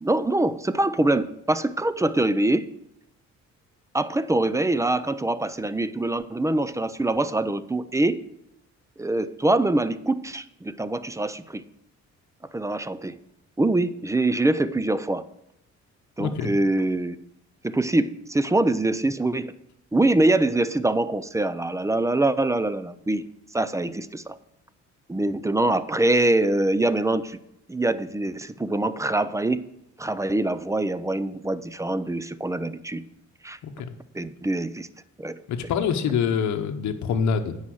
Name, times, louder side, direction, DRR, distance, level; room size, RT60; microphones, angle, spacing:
voice 1, 0.0-2.7 3.9-8.2 9.0-11.6 12.5-13.2 13.6-15.2 16.2-17.2 17.6-19.5 19.9-23.2 23.5-24.4 25.1-27.4 27.7-29.6 30.0-33.0 33.4-33.6 34.1-34.9 35.2-35.4, right 2 dB, 10° right, 14 dB, 0.5 m, -24 dB
voice 2, 16.2-16.5 33.6-33.9 35.5-37.6, left 6 dB, 70° left, 5 dB, 0.9 m, -25 dB
9.7 x 5.6 x 6.3 m, 0.81 s
cardioid pair, 90°, 30 cm